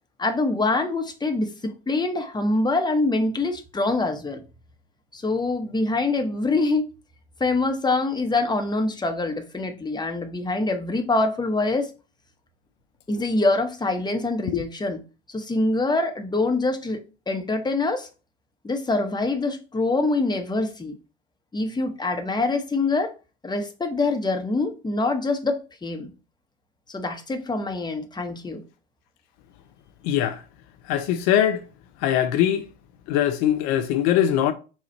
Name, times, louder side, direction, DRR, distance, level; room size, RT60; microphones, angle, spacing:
voice 1, 0.2-4.4 5.1-6.9 7.4-11.9 13.1-15.0 15.3-18.1 18.6-20.9 21.5-23.1 23.4-26.1 26.9-28.6, left 2 dB, 15° left, 1.0 m, -25 dB
voice 2, 30.0-30.4 30.9-31.6 32.0-32.6 33.1-34.5, left 11 dB, 65° left, 0.6 m, -21 dB
4.2 x 2.4 x 4.4 m
hypercardioid pair, 70°, 31 cm